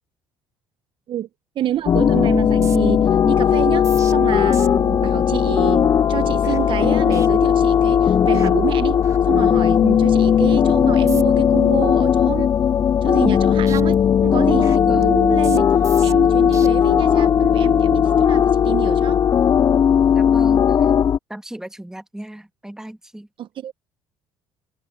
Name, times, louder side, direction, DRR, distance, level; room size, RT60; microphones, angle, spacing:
voice 1, 1.5-12.5 13.0-15.7 16.0-19.3 23.4-23.7, right 11 dB, 55° right, 1.0 m, -27 dB
sound 1, 1.7-2.0 2.2-8.0 8.3-8.5 8.8-9.7 10.1-10.4 10.9-11.5 11.9-13.4 13.7-16.7 17.2-17.5, right 5 dB, 30° right, 3.0 m, -42 dB
sound 2, 1.9-21.2, left 8 dB, 40° left, 0.4 m, -17 dB
voice 2, 14.9-15.2 20.1-20.9 21.3-23.3, right 1 dB, 5° right, 1.7 m, -35 dB
supercardioid pair, 75°, 10 cm